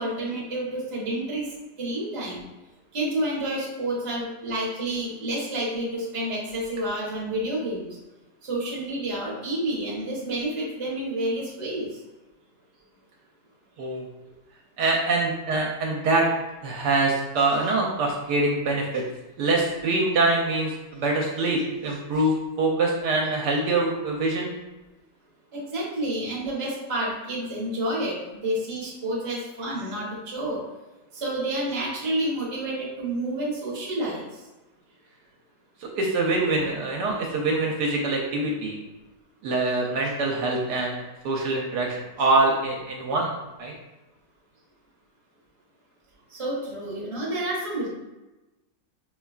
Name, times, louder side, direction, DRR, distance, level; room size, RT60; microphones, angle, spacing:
voice 1, 0.0-1.5 1.8-2.4 2.9-8.0 8.4-11.9 25.5-30.6 31.1-34.2 46.3-47.9, right 1 dB, 25° right, -5 dB, 0.7 m, -29 dB
voice 2, 14.8-16.3 16.6-19.0 19.4-24.5 35.8-38.8 39.4-43.3 43.6-43.7, right 2 dB, 75° right, -1 dB, 1.1 m, -24 dB
5.2 x 2.3 x 2.3 m, 1.1 s
omnidirectional pair, 1.9 m